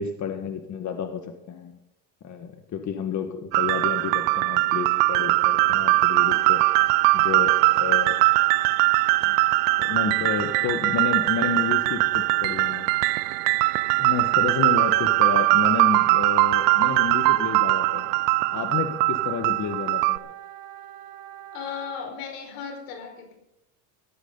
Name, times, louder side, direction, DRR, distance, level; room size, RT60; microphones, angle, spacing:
voice 1, 0.0-1.7 2.2-6.6 7.1-8.2 9.8-12.9 14.0-18.1 18.5-20.2, left 7 dB, 35° left, 7 dB, 1.7 m, -30 dB
sound 1, 3.5-20.2, right 21 dB, 85° right, 0.7 m, -21 dB
Wind instrument woodwind instrument, 6.2-22.1, right 11 dB, 55° right, 1.6 m, -42 dB
voice 2, 21.5-23.4, left 7 dB, 85° left, 4 dB, 4.8 m, -36 dB
16.0 x 14.5 x 4.0 m, 0.85 s
cardioid pair, 125°, 47 cm